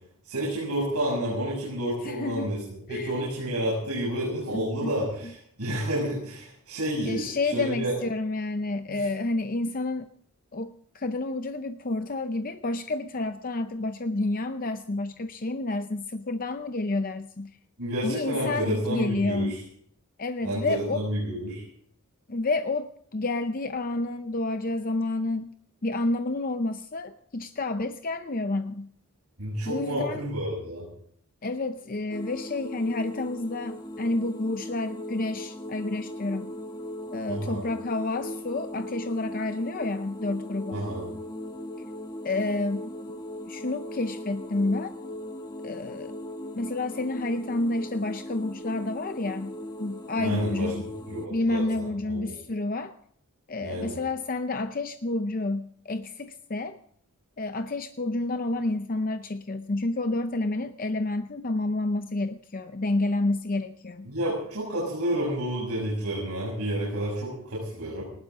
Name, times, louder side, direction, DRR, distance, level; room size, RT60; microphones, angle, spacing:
voice 1, 0.2-7.9 8.9-9.1 17.8-19.6 20.4-21.6 29.4-30.9 37.3-37.6 40.7-41.1 50.2-52.3 53.6-54.0 64.0-68.0, right 1 dB, 90° right, -5 dB, 7.0 m, -30 dB
voice 2, 2.0-2.5 2.9-3.3 4.5-4.9 7.1-10.1 10.5-17.5 18.0-19.5 20.2-21.0 22.3-25.5 25.8-28.9 29.7-30.2 31.4-36.5 37.1-40.9 42.2-42.9 43.5-44.9 45.6-46.1 46.5-50.8 51.3-52.9 53.5-56.8 57.4-64.1, left 2 dB, 40° left, 8 dB, 0.6 m, -29 dB
sound 1, 32.1-51.3, left 1 dB, 20° left, 1.1 m, -39 dB
19.0 x 19.0 x 3.7 m, 0.65 s
head